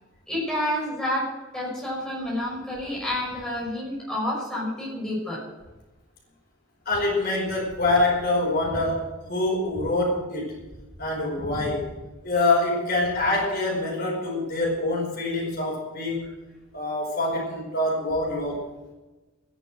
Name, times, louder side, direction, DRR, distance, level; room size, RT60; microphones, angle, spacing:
voice 1, 0.3-5.4, left 1 dB, 5° left, -5 dB, 5.8 m, -29 dB
voice 2, 6.8-9.0 9.3-10.6 11.0-11.9 12.2-16.3 16.7-18.6, left 2 dB, 45° left, -2 dB, 5.0 m, -25 dB
13.0 x 10.5 x 7.7 m, 1.1 s
head